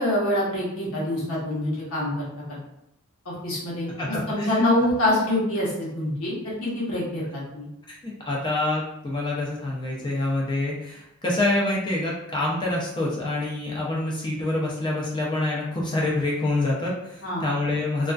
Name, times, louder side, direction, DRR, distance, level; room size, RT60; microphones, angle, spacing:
voice 1, 0.0-2.3 3.2-3.9 4.3-7.2 7.5-7.7 17.2-17.4, left 1 dB, 70° left, -6 dB, 1.0 m, -25 dB
voice 2, 4.0-4.7 7.9-18.1, left 2 dB, 20° left, -4 dB, 0.4 m, -26 dB
2.3 x 2.3 x 2.3 m, 0.84 s
head